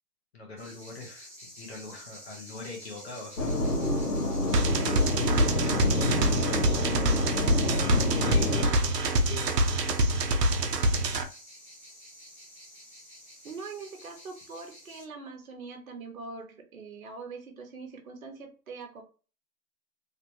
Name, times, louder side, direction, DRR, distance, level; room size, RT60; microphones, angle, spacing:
voice 1, 0.3-3.7 4.0-4.2 4.5-5.0 5.5-7.2 8.2-9.5, left 3 dB, 40° left, -1 dB, 1.1 m, -43 dB
sound 1, 0.6-15.0, left 1 dB, 10° right, 0.8 m, -49 dB
sound 2, 3.4-8.7, left 2 dB, 75° left, 1.3 m, -28 dB
sound 3, 4.5-11.2, right 1 dB, 85° right, 0.8 m, -26 dB
voice 2, 13.4-19.0, right 4 dB, 60° right, 3 dB, 1.1 m, -42 dB
3.2 x 2.9 x 2.8 m, 0.36 s
hypercardioid pair, 180°, 47 cm